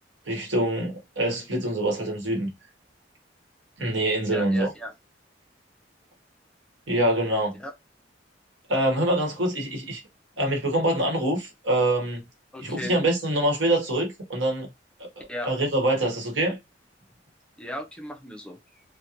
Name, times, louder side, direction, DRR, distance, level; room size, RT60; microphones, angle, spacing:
voice 1, 0.3-2.5 3.8-4.7 6.9-7.6 8.7-10.0 10.4-12.2 12.6-14.7 15.4-16.6, right 1 dB, 90° right, 1.1 m, -25 dB
voice 2, 4.3-4.9 7.6-7.7 12.5-13.0 15.3-15.5 17.6-18.6, equal, 5° left, 0.4 m, -36 dB
2.4 x 2.1 x 2.8 m
head